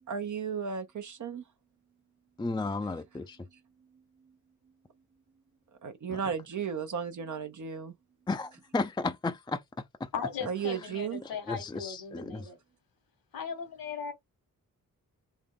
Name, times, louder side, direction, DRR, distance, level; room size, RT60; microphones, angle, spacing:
voice 1, 0.1-1.4 5.8-7.9 10.5-11.2, right 7 dB, 55° right, 0.8 m, -34 dB
voice 2, 2.4-3.4 6.1-6.2 8.3-9.6 10.0-10.1 11.2-12.5, left 3 dB, 10° left, 0.5 m, -34 dB
voice 3, 10.1-12.6 13.3-14.1, left 6 dB, 80° left, 1.7 m, -37 dB
3.6 x 2.0 x 3.6 m
supercardioid pair, 45°, 35 cm